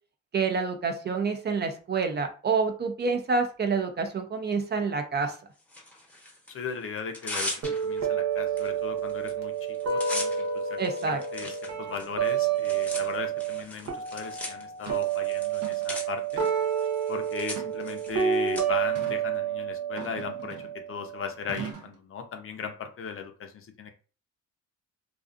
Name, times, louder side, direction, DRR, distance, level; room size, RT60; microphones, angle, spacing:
voice 1, 0.3-5.4 10.8-11.2, right 4 dB, 35° right, 6 dB, 0.5 m, -28 dB
Tearing, 5.7-6.5 7.0-8.1 8.6-8.7 9.0-9.3 9.6-18.6, left 1 dB, 5° left, 0.8 m, -39 dB
voice 2, 6.5-10.8 11.1-16.4 17.1-23.9, left 6 dB, 45° left, 5 dB, 0.6 m, -38 dB
sound 1, 7.6-13.6 13.9-21.6, right 8 dB, 60° right, 0.9 m, -29 dB
sound 2, 14.2-14.3 14.9-15.1 15.5-15.9 16.4-16.8 17.5-18.2 18.9-19.2 20.0-20.8 21.5-22.0, right 6 dB, 85° right, 0.7 m, -41 dB
2.4 x 2.4 x 2.4 m, 0.37 s
cardioid pair, 90°, 30 cm